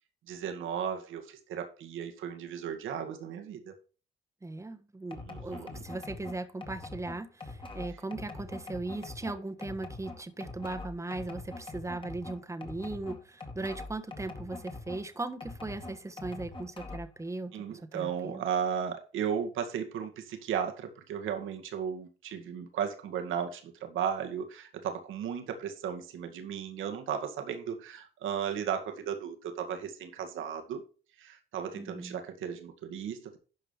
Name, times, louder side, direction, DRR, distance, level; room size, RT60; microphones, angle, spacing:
voice 1, 0.3-3.7 5.1-5.8 17.5-30.8 31.2-33.4, right 8 dB, 85° right, 2.2 m, -35 dB
voice 2, 4.4-18.4 31.8-32.2, right 2 dB, 15° right, 1.3 m, -38 dB
sound 1, 5.1-15.1 15.4-17.2, left 2 dB, 25° left, 2.2 m, -43 dB
12.0 x 5.1 x 5.7 m
cardioid pair, 90°, 20 cm